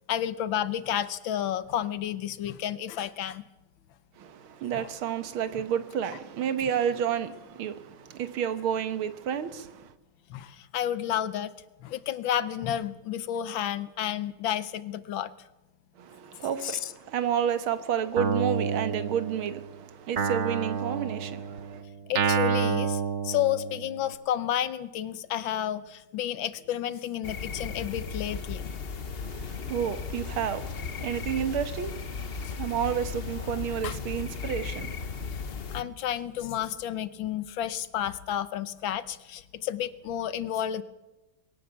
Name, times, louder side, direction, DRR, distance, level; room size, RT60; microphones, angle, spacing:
voice 1, 0.1-3.4 4.7-4.9 10.3-11.5 11.8-15.3 16.6-16.9 22.1-28.7 32.4-32.5 33.8-34.0 35.7-40.8, left 11 dB, 70° left, 1.5 m, -31 dB
voice 2, 4.2-9.9 16.0-21.8 29.2-35.3, right 9 dB, 80° right, 2.0 m, -31 dB
Guitar, 18.2-19.7 20.2-24.0, right 5 dB, 45° right, 1.0 m, -29 dB
sound 1, 27.2-35.8, left 5 dB, 45° left, 0.8 m, -36 dB
21.5 x 17.5 x 7.1 m
omnidirectional pair, 2.3 m